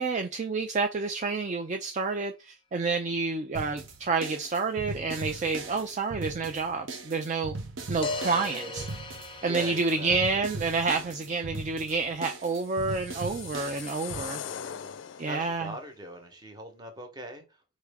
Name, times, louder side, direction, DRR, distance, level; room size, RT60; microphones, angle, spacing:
voice 1, 0.0-7.6 7.9-8.9 9.4-14.4 15.2-15.7, right 4 dB, 40° right, 0.4 m, -29 dB
sound 1, 1.1-1.2 8.0-10.3, left 3 dB, 25° left, 0.7 m, -37 dB
sound 2, 3.5-14.2, right 3 dB, 85° right, 1.1 m, -39 dB
voice 2, 8.0-8.9 9.4-10.4 13.9-17.6, right 1 dB, 20° right, 1.1 m, -43 dB
sound 3, 12.4-15.6, left 9 dB, 70° left, 0.4 m, -41 dB
4.7 x 3.2 x 3.5 m
head